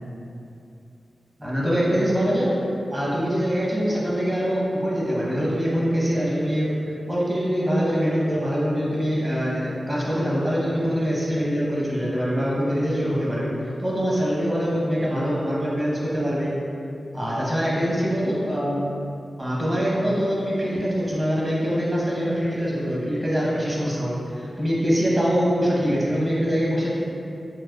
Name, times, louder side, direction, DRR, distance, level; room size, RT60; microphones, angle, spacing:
voice 1, 1.4-2.6 2.9-6.7 7.1-13.5 13.8-16.5 17.1-18.8 19.4-26.9, equal, 30° right, -6 dB, 0.9 m, -24 dB
4.3 x 2.1 x 2.3 m, 2.6 s
cardioid pair, 45°, 0 cm